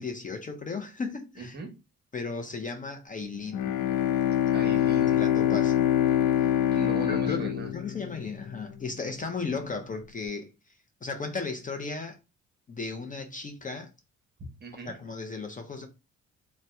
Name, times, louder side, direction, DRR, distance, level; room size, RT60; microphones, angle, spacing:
voice 1, 0.0-1.6 2.1-3.7 5.1-5.8 7.1-10.7 11.0-12.2 12.7-13.9 14.9-15.9, left 4 dB, 25° left, 0.5 m, -35 dB
voice 2, 1.4-1.7 4.5-5.2 6.7-7.7 14.4-15.0, right 4 dB, 35° right, 1.0 m, -39 dB
Bowed string instrument, 3.5-8.7, left 11 dB, 85° left, 0.5 m, -25 dB
2.7 x 2.1 x 3.3 m
cardioid pair, 90°, 30 cm